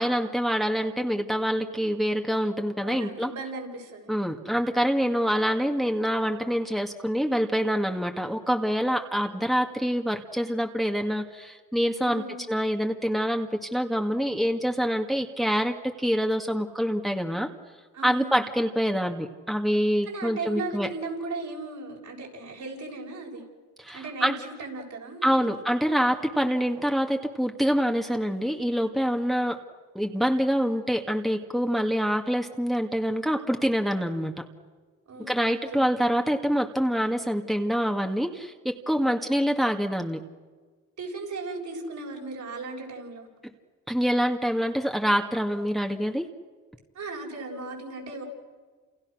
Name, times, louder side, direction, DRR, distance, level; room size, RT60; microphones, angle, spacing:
voice 1, 0.0-3.3 4.1-17.5 18.0-20.9 23.8-24.4 25.2-29.6 29.9-34.3 35.2-40.2 43.9-46.2, equal, ahead, 3 dB, 2.2 m, -26 dB
voice 2, 2.8-4.1 12.0-12.5 17.9-18.4 20.0-23.4 23.9-25.5 35.1-35.9 39.0-39.4 41.0-43.3 46.9-48.2, right 3 dB, 65° right, 0 dB, 7.4 m, -37 dB
29.5 x 29.0 x 6.5 m, 1.5 s
supercardioid pair, 55°, 31 cm